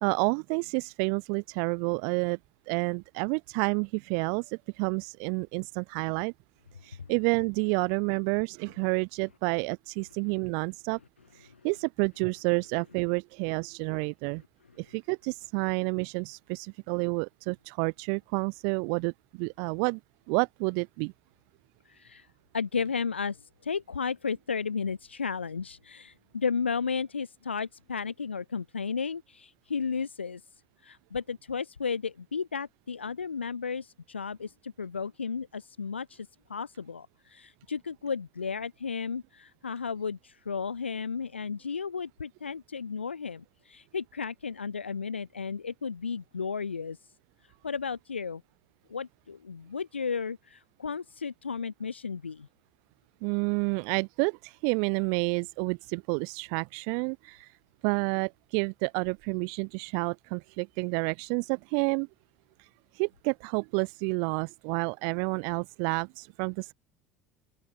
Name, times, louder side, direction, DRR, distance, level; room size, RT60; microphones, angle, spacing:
voice 1, 0.0-2.4 2.7-6.3 6.8-11.0 11.4-14.4 14.8-20.0 20.3-21.1 53.2-57.5 57.8-62.1 62.9-66.7, right 40 dB or more, 60° right, 1.7 m, -29 dB
voice 2, 21.8-22.3 22.5-30.4 30.8-47.0 47.6-48.4 48.9-52.5, left 5 dB, 80° left, 5.1 m, -34 dB
open air
figure-of-eight pair, 65°, 6 cm